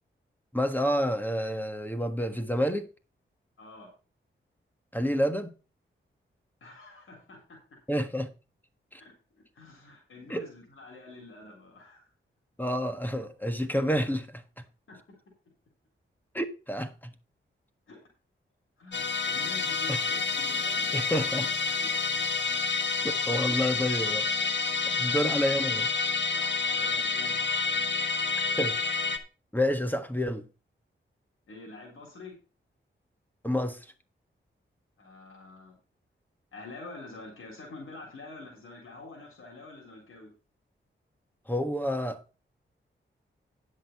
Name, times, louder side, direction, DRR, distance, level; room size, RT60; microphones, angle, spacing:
voice 1, 0.5-2.9 4.9-5.5 7.9-8.3 8.9-9.0 10.3-10.5 12.6-14.6 16.3-17.1 19.9-20.0 20.9-21.5 23.0-24.3 24.9-25.9 28.6-28.7 29.5-30.5 33.4-33.9 41.5-42.2, equal, 10° left, 1.5 m, -29 dB
voice 2, 3.6-3.9 6.6-7.6 9.0-9.1 9.5-12.1 14.9-15.2 17.9-18.0 18.8-21.9 24.9-25.2 26.3-27.5 31.5-32.3 35.0-35.8 36.5-40.3, left 3 dB, 80° left, 3.9 m, -47 dB
Musical instrument, 18.9-29.2, left 4 dB, 60° left, 1.3 m, -28 dB
10.0 x 6.5 x 5.6 m
cardioid pair, 65°, 21 cm